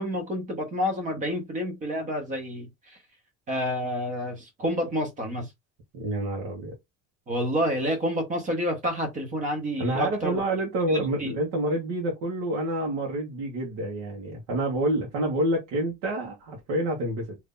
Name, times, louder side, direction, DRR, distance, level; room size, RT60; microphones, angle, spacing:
voice 1, 0.0-2.7 3.5-5.5 7.3-10.4 10.9-11.3, equal, 25° right, 1.0 m, -28 dB
voice 2, 5.9-6.7 9.8-17.4, right 1 dB, 65° right, 1.3 m, -28 dB
2.8 x 2.6 x 3.7 m
cardioid pair, 175°, 32 cm